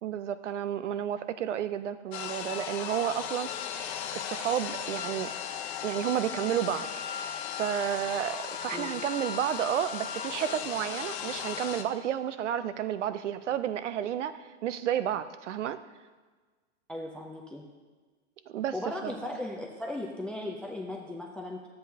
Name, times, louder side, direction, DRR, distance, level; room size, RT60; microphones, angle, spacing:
voice 1, 0.0-3.5 3.8-5.3 5.8-7.3 7.6-14.3 14.6-15.8 18.5-18.7 19.0-19.2, right 10 dB, 80° right, 12 dB, 0.6 m, -31 dB
sound 1, 2.1-11.8, left 8 dB, 65° left, 0.8 m, -36 dB
voice 2, 16.9-17.6 18.7-21.7, left 1 dB, 5° left, 1 dB, 0.3 m, -37 dB
11.0 x 7.7 x 2.8 m, 1.4 s
hypercardioid pair, 115°, 35 cm